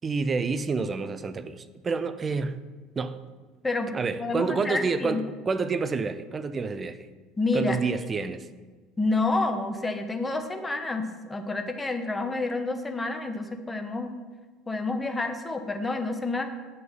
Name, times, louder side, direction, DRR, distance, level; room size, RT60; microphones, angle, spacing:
voice 1, 0.0-2.6 3.0-3.2 3.9-7.1 7.5-8.5, right 4 dB, 25° right, 0.6 m, -28 dB
voice 2, 4.2-5.2 7.4-7.8 9.0-14.2 14.7-16.5, left 3 dB, 15° left, 1.2 m, -29 dB
9.4 x 6.1 x 7.2 m
figure-of-eight pair, 65°, 0 cm